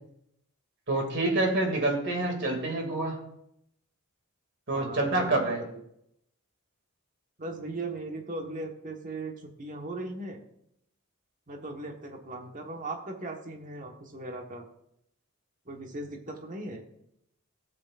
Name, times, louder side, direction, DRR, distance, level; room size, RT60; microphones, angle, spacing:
voice 1, 0.9-3.2 4.7-5.6, right 2 dB, 55° right, 2 dB, 2.4 m, -27 dB
voice 2, 4.7-5.7 7.4-10.4 11.5-14.7 15.6-16.8, right 2 dB, 40° right, 2 dB, 1.3 m, -38 dB
16.0 x 7.9 x 2.5 m, 0.76 s
head